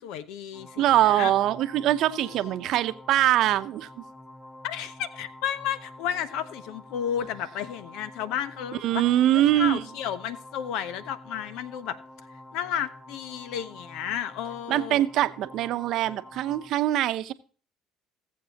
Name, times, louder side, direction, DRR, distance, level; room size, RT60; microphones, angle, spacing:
voice 1, 0.0-1.3 2.1-2.6 4.6-9.0 9.3-12.0 12.5-15.0, left 9 dB, 75° left, 0.7 m, -33 dB
sound 1, 0.5-16.7, left 1 dB, 15° left, 4.4 m, -47 dB
voice 2, 0.8-4.0 8.8-9.8 14.7-17.3, right 13 dB, 65° right, 0.8 m, -23 dB
19.0 x 7.4 x 2.9 m
supercardioid pair, 75°, 0 cm